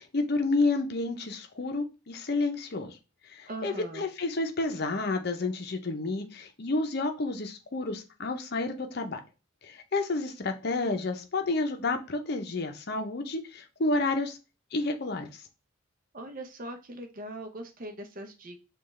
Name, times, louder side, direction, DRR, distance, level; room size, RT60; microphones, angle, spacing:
voice 1, 0.0-3.0 3.2-9.2 9.6-14.4 14.7-15.4, left 3 dB, 50° left, 6 dB, 0.6 m, -30 dB
voice 2, 3.5-4.0 16.1-18.6, right 1 dB, 40° right, 5 dB, 0.7 m, -40 dB
5.7 x 2.4 x 3.1 m, 0.30 s
head